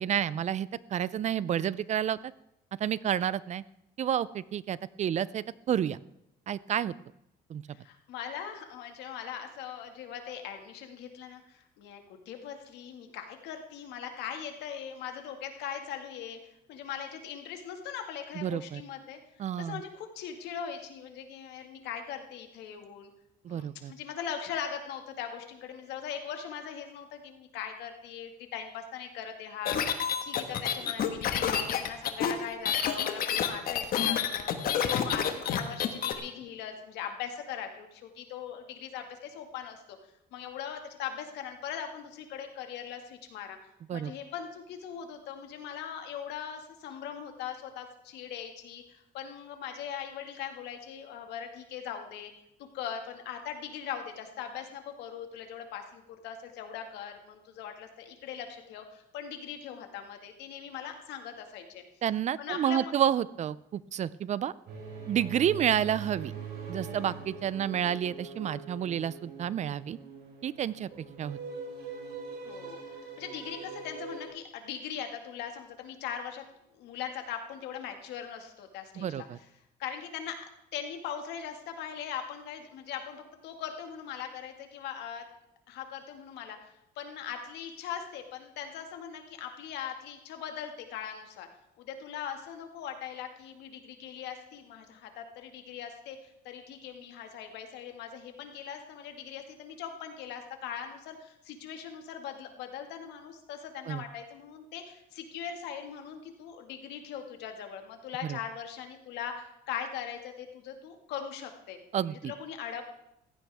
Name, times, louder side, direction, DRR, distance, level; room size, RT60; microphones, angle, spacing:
voice 1, 0.0-2.2 2.8-3.6 4.0-6.0 6.5-6.9 7.5-7.6 18.4-18.8 19.4-19.8 23.4-23.9 43.9-44.1 62.0-64.5 65.1-66.3 66.7-70.0 70.4-70.9 71.2-71.4 79.0-79.4 103.9-104.0 108.2-108.4 111.9-112.3, right 10 dB, 45° right, 20 dB, 0.4 m, -30 dB
voice 2, 7.7-16.4 16.7-19.2 19.6-23.1 23.5-39.8 40.3-43.6 43.9-52.3 52.6-61.8 62.4-62.9 72.4-76.4 76.7-79.3 79.8-80.4 80.7-85.2 85.7-86.7 87.0-91.5 91.8-111.8 112.2-112.8, left 8 dB, 85° left, 5 dB, 1.9 m, -40 dB
sound 1, 29.7-36.1, left 8 dB, 60° left, 1.5 m, -28 dB
sound 2, 64.7-74.3, right 5 dB, 70° right, 4.5 m, -42 dB
16.0 x 15.0 x 3.5 m, 0.81 s
cardioid pair, 110°, 17 cm